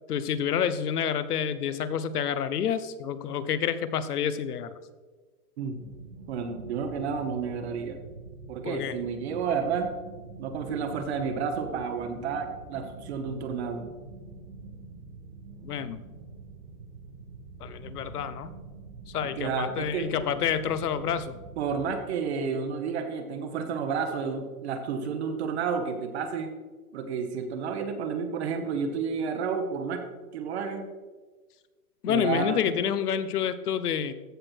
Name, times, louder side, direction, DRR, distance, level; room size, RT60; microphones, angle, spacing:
voice 1, 0.1-4.7 8.6-9.0 15.6-16.0 17.6-18.5 19.1-21.4 32.0-34.1, left 8 dB, 75° left, 14 dB, 1.1 m, -28 dB
sound 1, 5.8-21.9, right 4 dB, 65° right, 2.9 m, -45 dB
voice 2, 6.3-8.0 8.5-9.9 10.4-13.9 19.2-20.1 21.6-26.5 26.9-30.0 30.3-30.9 32.1-32.7, right 6 dB, 45° right, 6 dB, 1.2 m, -31 dB
15.0 x 6.4 x 4.6 m, 1.3 s
hypercardioid pair, 155°, 46 cm